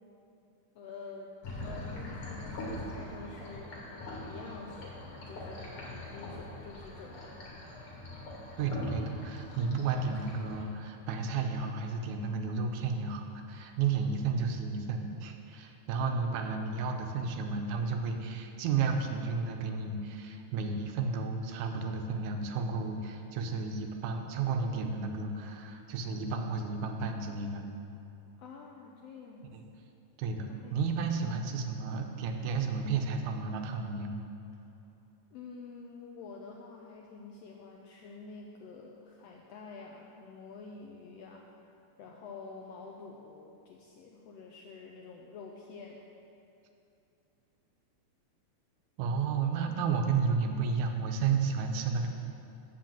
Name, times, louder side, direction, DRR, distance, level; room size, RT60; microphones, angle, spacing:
voice 1, 0.7-1.3 1.6-3.7 4.2-7.2 28.4-29.5 30.5-30.8 34.6-34.7 35.3-41.4 42.0-46.0, left 4 dB, 80° left, 0 dB, 1.4 m, -48 dB
sound 1, 1.4-10.6, left 1 dB, 50° left, 2.2 m, -42 dB
voice 2, 8.6-27.6 29.5-29.7 30.2-34.2 49.0-52.1, right 5 dB, 85° right, 4 dB, 2.2 m, -32 dB
7.6 x 5.7 x 7.3 m, 2.7 s
omnidirectional pair, 3.4 m